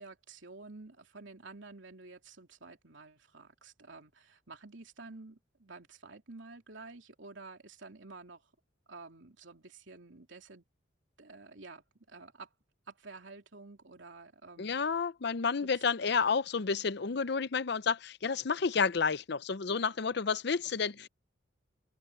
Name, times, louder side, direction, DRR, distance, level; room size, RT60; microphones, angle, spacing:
voice 1, 0.0-8.5 8.9-10.6 11.2-12.5 12.9-15.1 15.6-15.7 21.0-21.1, right 3 dB, 70° right, 3.0 m, -50 dB
voice 2, 14.6-21.1, left 5 dB, 60° left, 0.6 m, -30 dB
open air
head